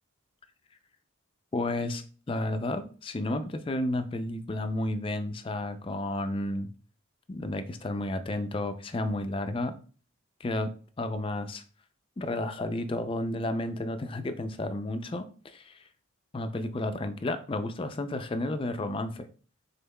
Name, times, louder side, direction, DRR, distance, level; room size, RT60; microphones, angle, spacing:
voice 1, 1.5-6.7 7.3-9.7 10.4-10.7 11.0-11.6 12.2-15.8 16.3-19.3, left 1 dB, 25° left, 9 dB, 0.3 m, -32 dB
5.3 x 3.8 x 2.2 m, 0.40 s
head